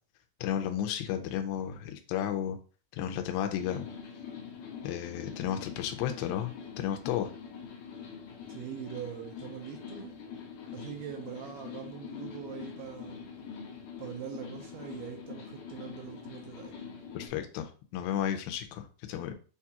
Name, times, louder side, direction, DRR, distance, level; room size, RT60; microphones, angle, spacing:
voice 1, 0.4-2.6 2.9-3.9 4.8-7.3 17.1-19.3, left 10 dB, 90° left, 2.4 m, -33 dB
sound 1, 3.6-17.3, left 6 dB, 70° left, 2.0 m, -44 dB
voice 2, 8.5-10.1 10.7-13.2 14.0-16.8, right 9 dB, 80° right, 1.9 m, -42 dB
6.5 x 2.3 x 2.8 m
omnidirectional pair, 4.2 m